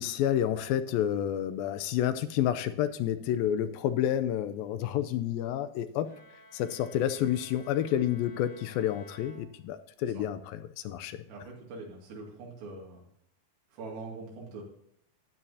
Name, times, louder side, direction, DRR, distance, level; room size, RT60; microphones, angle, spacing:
voice 1, 0.0-6.1 6.5-11.3, left 11 dB, 80° left, 11 dB, 2.3 m, -29 dB
Bowed string instrument, 6.0-10.0, left 1 dB, 25° left, 3.2 m, -54 dB
voice 2, 11.2-13.0 13.7-14.6, right 3 dB, 75° right, -3 dB, 4.1 m, -43 dB
12.0 x 9.5 x 2.7 m, 0.72 s
omnidirectional pair, 4.4 m